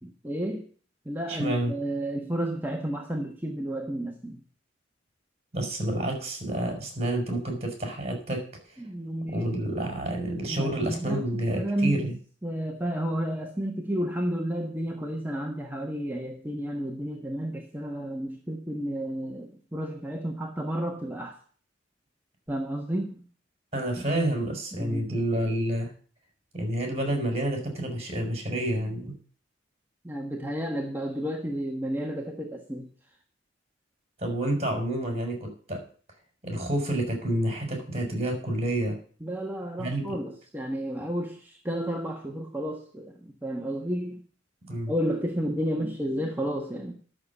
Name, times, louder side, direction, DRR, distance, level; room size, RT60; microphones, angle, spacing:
voice 1, 0.0-0.7 1.0-4.4 8.8-9.7 10.5-12.1 12.4-21.4 22.5-23.2 24.7-25.1 30.0-32.9 39.2-44.2 44.9-46.9, right 1 dB, 10° right, 1 dB, 1.3 m, -31 dB
voice 2, 1.3-1.7 5.5-8.4 9.3-12.1 23.7-25.9 26.5-29.2 34.2-35.8 36.4-39.0 39.8-40.1 44.7-44.9, right 1 dB, 35° right, 3 dB, 5.0 m, -29 dB
11.5 x 7.0 x 8.3 m, 0.43 s
head